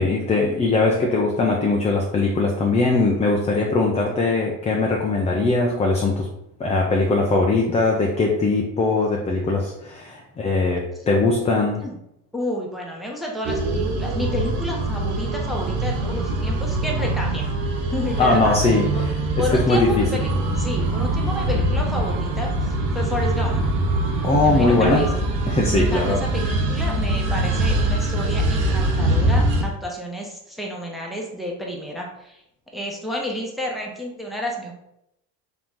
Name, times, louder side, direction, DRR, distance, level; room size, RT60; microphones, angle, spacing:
voice 1, 0.0-6.3 6.6-11.8 18.2-18.9 19.5-20.1 24.2-25.0 25.5-26.2, left 3 dB, 15° left, 0 dB, 0.5 m, -20 dB
voice 2, 12.3-17.5 17.9-19.0 19.4-20.3 20.6-23.6 24.4-25.1 25.7-32.4 32.7-34.7, left 1 dB, ahead, -2 dB, 0.9 m, -30 dB
sound 1, 13.4-29.6, right 2 dB, 80° right, 0.8 m, -23 dB
3.9 x 3.0 x 3.6 m, 0.80 s
supercardioid pair, 110°, 40 cm